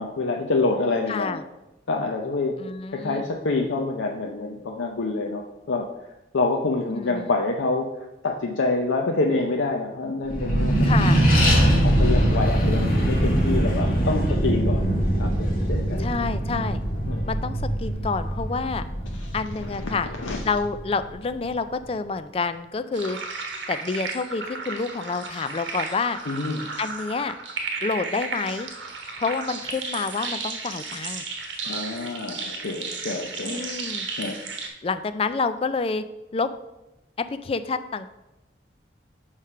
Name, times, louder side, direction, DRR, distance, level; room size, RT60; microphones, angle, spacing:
voice 1, 0.0-1.4 1.9-2.5 2.9-5.9 6.3-7.9 8.2-10.9 11.5-14.8 15.2-16.1 17.1-17.2 19.1-19.3 19.6-20.4 26.3-26.7 31.6-33.6 34.2-34.4, left 3 dB, 90° left, 1 dB, 0.6 m, -27 dB
voice 2, 1.1-1.4 2.6-3.3 6.9-7.3 10.8-11.3 16.0-16.8 17.3-18.8 19.3-20.1 20.4-23.2 23.7-26.2 26.8-27.3 27.8-28.7 29.2-31.2 33.4-34.1 34.8-36.0 36.3-36.5 37.3-38.1, left 4 dB, 30° left, 11 dB, 0.3 m, -28 dB
Accelerating revving vroom, 10.3-21.2, right 1 dB, 45° left, 2.5 m, -22 dB
sound 1, 22.9-34.7, right 4 dB, 80° right, 1.2 m, -34 dB
5.7 x 4.8 x 5.5 m, 0.97 s
head